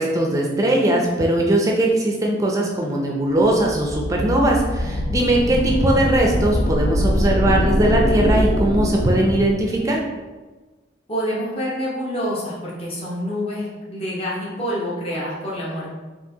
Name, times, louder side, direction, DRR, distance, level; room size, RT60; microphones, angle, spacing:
voice 1, 0.0-10.0, right 1 dB, 20° right, -1 dB, 0.4 m, -20 dB
sound 1, 3.4-9.9, equal, 55° left, 0.4 m, -23 dB
voice 2, 11.1-15.9, equal, 30° left, -6 dB, 0.9 m, -27 dB
4.5 x 2.9 x 2.7 m, 1.3 s
head